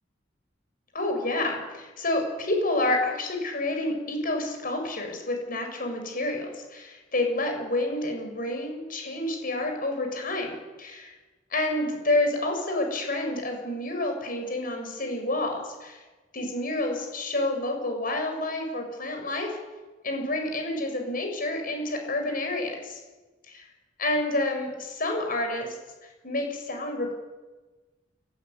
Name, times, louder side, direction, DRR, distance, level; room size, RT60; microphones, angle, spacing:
voice 1, 0.9-11.1 11.5-16.0 16.3-19.6 20.0-23.0 23.5-23.6 24.0-25.8 26.0-27.1, left 2 dB, 45° left, 3 dB, 7.8 m, -29 dB
30.0 x 16.0 x 9.8 m, 1.2 s
head